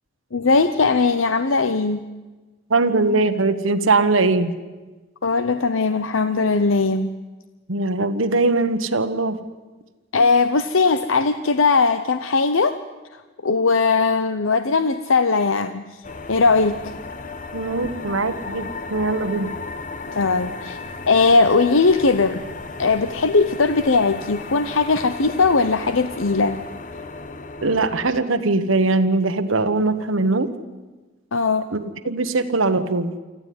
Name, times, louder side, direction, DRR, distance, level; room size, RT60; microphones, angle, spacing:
voice 1, 0.3-2.0 5.2-7.1 10.1-12.8 13.4-16.0 16.3-16.9 20.1-20.8 21.1-22.4 22.8-26.6 31.3-31.7, left 4 dB, 85° left, 10 dB, 0.8 m, -19 dB
voice 2, 2.7-4.5 7.7-9.4 17.5-19.5 27.6-30.5 31.7-33.1, right 3 dB, 90° right, 8 dB, 1.3 m, -21 dB
sound 1, 16.0-28.2, left 3 dB, 40° left, 1.0 m, -35 dB
25.0 x 14.5 x 9.5 m, 1.2 s
head